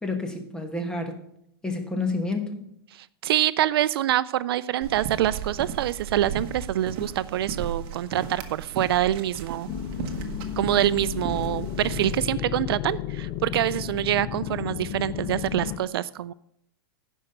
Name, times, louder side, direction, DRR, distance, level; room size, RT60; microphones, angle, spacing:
voice 1, 0.0-1.2 1.6-2.7, left 3 dB, 5° left, 4 dB, 1.2 m, -29 dB
voice 2, 3.0-9.7 10.6-16.3, right 12 dB, 75° right, 18 dB, 0.4 m, -25 dB
sound 1, 4.8-12.3, right 7 dB, 40° right, 1.2 m, -35 dB
sound 2, 9.7-15.8, left 11 dB, 30° left, 0.5 m, -33 dB
9.9 x 5.5 x 6.5 m, 0.75 s
supercardioid pair, 145°, 13 cm